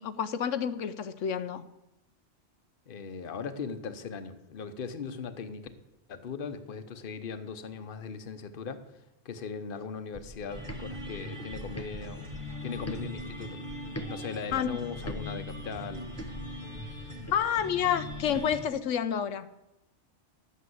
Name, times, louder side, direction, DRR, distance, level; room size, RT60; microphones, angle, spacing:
voice 1, 0.0-1.6 14.5-14.8 17.3-19.5, left 8 dB, 85° left, 11 dB, 1.0 m, -29 dB
voice 2, 2.9-5.7 6.1-8.8 9.2-12.3 12.6-13.6 14.1-16.1, left 5 dB, 50° left, 11 dB, 1.1 m, -39 dB
sound 1, 10.1-14.1 14.5-18.5, equal, 15° left, 0.7 m, -43 dB
sound 2, 10.5-18.7, left 1 dB, 25° right, 1.9 m, -41 dB
12.0 x 8.4 x 7.8 m, 0.93 s
omnidirectional pair, 1.2 m